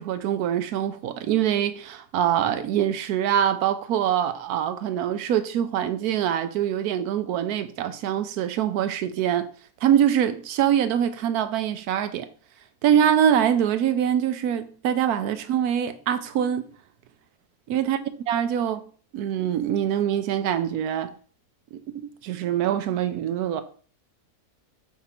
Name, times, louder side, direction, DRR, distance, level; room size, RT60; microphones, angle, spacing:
voice 1, 0.0-9.5 9.8-12.3 12.8-16.7 17.7-18.0 18.3-18.9 19.1-21.1 21.7-23.6, right 9 dB, 80° right, 1.1 m, -24 dB
6.1 x 3.6 x 4.3 m
omnidirectional pair, 1.6 m